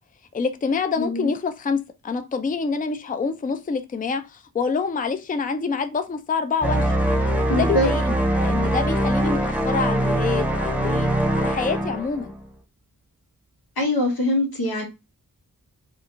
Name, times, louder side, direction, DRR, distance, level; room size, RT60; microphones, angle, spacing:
voice 1, 0.3-7.0 7.5-12.3, left 5 dB, 25° left, 0.4 m, -26 dB
voice 2, 1.0-1.3 7.5-7.9 13.8-14.9, left 1 dB, 85° left, 1.3 m, -23 dB
sound 1, 6.6-12.4, right 1 dB, 5° right, 0.8 m, -22 dB
2.9 x 2.5 x 3.6 m
wide cardioid pair, 75°, 36 cm